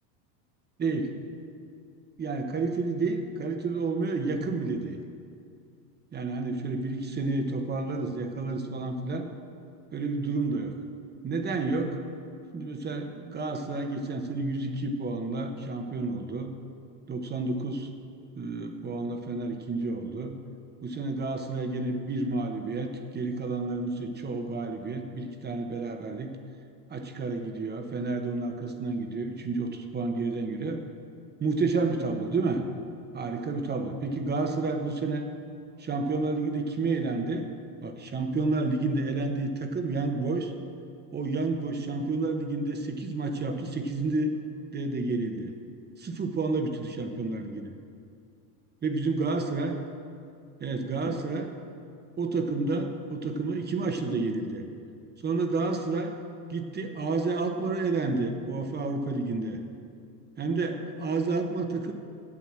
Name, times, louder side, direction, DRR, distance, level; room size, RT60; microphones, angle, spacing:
voice 1, 0.8-1.1 2.2-5.0 6.1-9.3 9.9-10.7 11.2-12.0 12.5-16.5 17.1-17.9 18.4-20.4 20.8-26.4 26.9-30.8 31.4-32.6 33.1-35.2 35.8-37.4 37.8-40.5 41.1-44.4 44.7-45.5 46.0-47.7 48.8-49.7 50.6-51.5 52.2-54.6 55.2-56.1 56.5-59.6 60.4-61.9, right 3 dB, 20° right, 6 dB, 1.1 m, -30 dB
9.6 x 8.2 x 7.7 m, 2.3 s
supercardioid pair, 105°, 46 cm